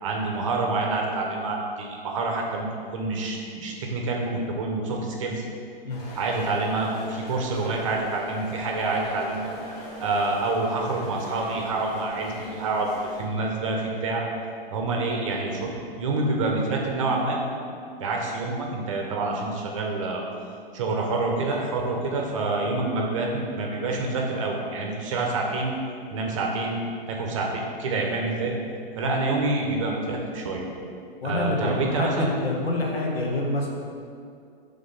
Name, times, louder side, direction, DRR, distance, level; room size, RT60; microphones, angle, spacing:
voice 1, 0.0-2.7 2.9-5.4 6.1-9.5 10.0-12.9 13.2-14.3 14.7-15.7 16.0-17.4 18.0-20.2 20.7-25.7 26.1-26.8 27.1-28.5 28.9-30.7 31.2-32.3, right 3 dB, 35° right, 0 dB, 0.7 m, -27 dB
sound 1, 5.9-13.2, left 1 dB, 40° left, 1.2 m, -41 dB
voice 2, 31.2-33.7, left 2 dB, 85° left, -1 dB, 1.4 m, -27 dB
5.6 x 3.7 x 5.5 m, 2.3 s
hypercardioid pair, 170°, 30 cm